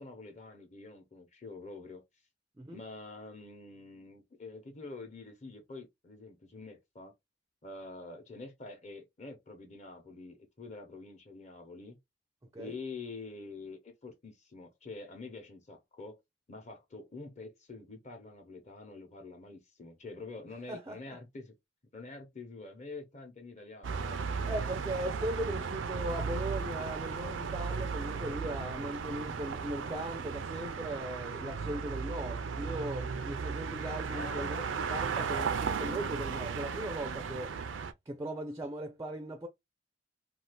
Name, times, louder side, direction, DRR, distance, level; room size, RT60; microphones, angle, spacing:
voice 1, 0.0-2.0 2.7-7.1 7.6-12.0 12.6-16.2 16.5-21.5 21.9-24.3 34.1-34.7, left 3 dB, 40° left, 0.9 m, -46 dB
voice 2, 20.7-21.2 24.5-34.6 34.9-37.5 38.1-39.5, right 1 dB, 15° right, 0.4 m, -38 dB
sound 1, 23.8-37.9, right 5 dB, 85° right, 0.4 m, -35 dB
2.6 x 2.4 x 3.4 m
head